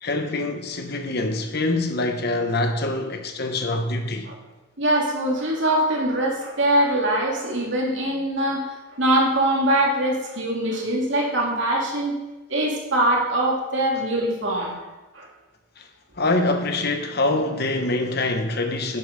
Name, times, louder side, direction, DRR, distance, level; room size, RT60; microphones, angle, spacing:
voice 1, 0.0-4.3 15.8-15.9 16.2-19.0, left 2 dB, 50° left, 1.2 m, -25 dB
voice 2, 4.8-8.6 9.0-12.2 12.5-14.8 15.1-15.3, right 1 dB, 60° right, 2.8 m, -22 dB
11.0 x 8.3 x 5.3 m
head